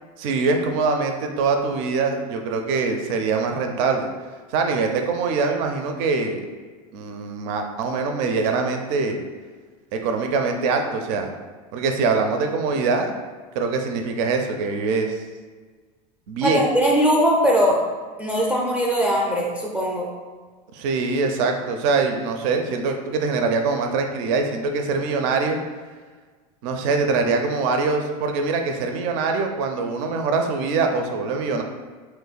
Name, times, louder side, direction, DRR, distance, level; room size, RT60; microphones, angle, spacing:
voice 1, 0.2-4.1 4.5-6.4 6.9-9.2 9.9-11.3 11.7-13.1 13.5-15.2 16.3-16.6 20.7-25.6 26.6-31.6, right 4 dB, 55° right, 4 dB, 0.5 m, -23 dB
voice 2, 16.4-17.8 18.2-20.1, equal, 5° right, -2 dB, 0.5 m, -20 dB
3.0 x 2.1 x 4.0 m, 1.5 s
supercardioid pair, 125°, 19 cm